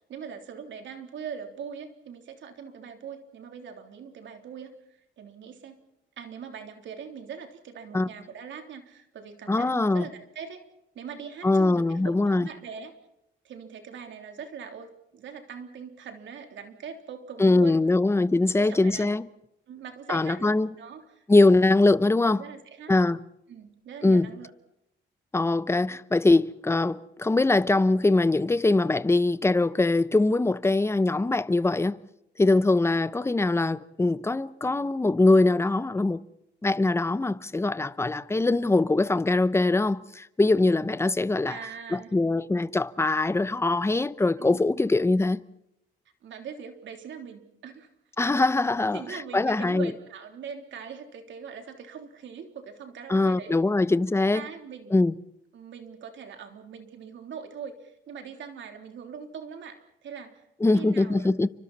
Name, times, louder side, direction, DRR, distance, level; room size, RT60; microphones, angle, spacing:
voice 1, 0.1-5.8 6.2-10.6 11.0-12.9 13.4-17.8 18.4-19.1 19.7-21.2 22.1-22.9 23.5-24.5 41.5-42.1 44.4-44.6 46.2-47.9 48.9-53.6 54.3-55.0 55.5-60.4 60.7-61.3, right 7 dB, 70° right, 3.5 m, -41 dB
voice 2, 9.5-10.1 11.4-12.5 17.4-19.2 20.1-20.7 21.3-22.4 22.9-23.2 24.0-24.3 25.3-32.0 32.4-36.2 36.6-41.6 41.9-45.4 48.2-49.0 49.3-49.9 53.1-54.4 54.9-55.1 60.6-61.5, left 2 dB, 15° left, 0.9 m, -22 dB
30.0 x 25.0 x 4.3 m
cardioid pair, 90°, 20 cm